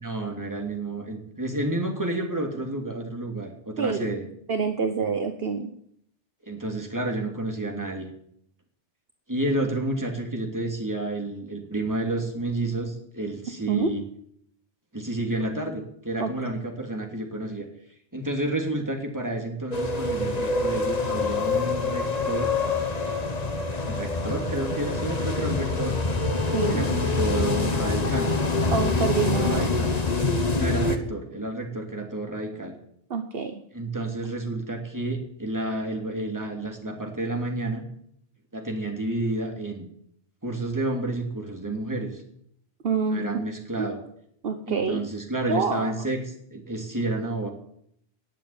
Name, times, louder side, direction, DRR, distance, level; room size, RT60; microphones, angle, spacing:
voice 1, 0.0-4.2 6.4-8.1 9.3-14.0 14.9-17.7 18.1-22.5 23.9-26.0 26.7-28.3 29.3-30.0 30.6-32.7 33.7-37.8 38.5-39.8 40.4-42.2 43.1-44.0 44.7-47.5, right 2 dB, 15° right, 2 dB, 2.8 m, -30 dB
voice 2, 3.8-4.1 4.5-5.7 13.7-13.9 16.2-16.3 26.5-26.9 28.7-29.7 33.1-33.6 42.8-43.3 43.8-43.9 44.4-45.0 45.5-45.9, right 5 dB, 60° right, 7 dB, 1.2 m, -26 dB
sound 1, 19.7-31.0, left 3 dB, 35° left, 1.5 m, -25 dB
18.5 x 7.4 x 8.7 m, 0.69 s
omnidirectional pair, 1.2 m